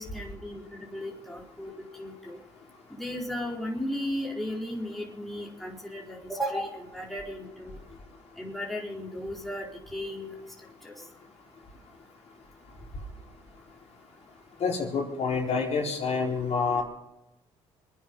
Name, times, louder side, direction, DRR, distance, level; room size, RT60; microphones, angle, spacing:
voice 1, 0.0-1.7 2.0-2.4 3.0-7.8 8.4-9.7 9.9-10.3 10.8-10.9, equal, ahead, -3 dB, 4.3 m, -35 dB
voice 2, 14.6-16.8, left 5 dB, 55° left, -1 dB, 4.3 m, -27 dB
25.0 x 9.8 x 5.6 m, 0.90 s
supercardioid pair, 65°, 13 cm